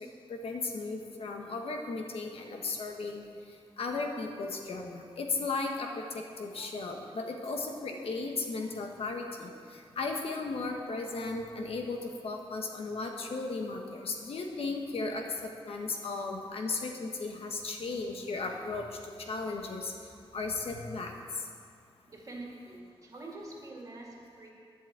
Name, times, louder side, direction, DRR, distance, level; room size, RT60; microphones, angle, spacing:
voice 1, 0.0-3.2 3.8-18.9 19.3-19.9 20.3-21.1, left 3 dB, 70° left, 2 dB, 1.4 m, -36 dB
voice 2, 22.1-24.5, right 2 dB, 35° right, -2 dB, 2.2 m, -45 dB
10.5 x 8.0 x 8.2 m, 2.3 s
wide cardioid pair, 175°, 10 cm